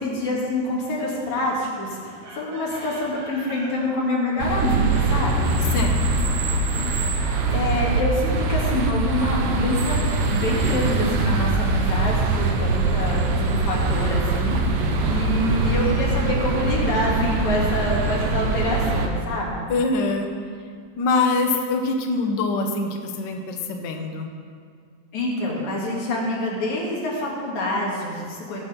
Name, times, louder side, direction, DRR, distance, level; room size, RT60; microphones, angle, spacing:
voice 1, 0.0-5.6 7.5-10.0 10.3-19.7 25.1-28.6, left 1 dB, 65° left, -4 dB, 3.5 m, -26 dB
Chicken rooster, 2.2-3.8 6.7-8.1 10.2-11.8 13.7-15.2, right 2 dB, 55° right, 2.4 m, -42 dB
sound 1, 4.4-19.1, right 3 dB, 80° right, 2.5 m, -23 dB
voice 2, 5.7-6.4 19.7-20.3 21.0-24.3, left 3 dB, 80° left, 3 dB, 0.9 m, -24 dB
18.0 x 6.2 x 5.1 m, 2.1 s
omnidirectional pair, 3.5 m